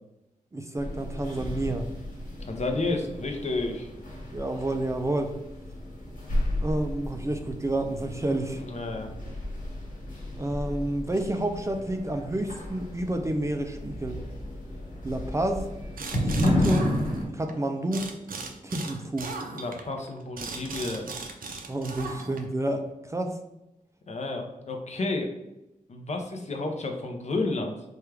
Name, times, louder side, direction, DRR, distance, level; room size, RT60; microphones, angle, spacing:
voice 1, 0.5-1.9 4.3-5.3 6.6-8.6 10.4-14.2 15.0-15.6 16.2-16.9 17.3-18.1 18.6-19.3 21.7-23.4, right 1 dB, 20° right, 5 dB, 0.3 m, -29 dB
sound 1, 0.8-17.3, left 1 dB, 70° left, 1.4 m, -33 dB
voice 2, 2.4-3.9 8.6-9.1 19.5-21.1 24.1-25.3 25.9-27.7, left 2 dB, 55° left, 3 dB, 0.6 m, -31 dB
sound 2, 16.0-17.5 17.9-22.6, right 4 dB, 85° right, 0.5 m, -38 dB
4.6 x 2.3 x 3.3 m, 0.91 s
wide cardioid pair, 130°, 14 cm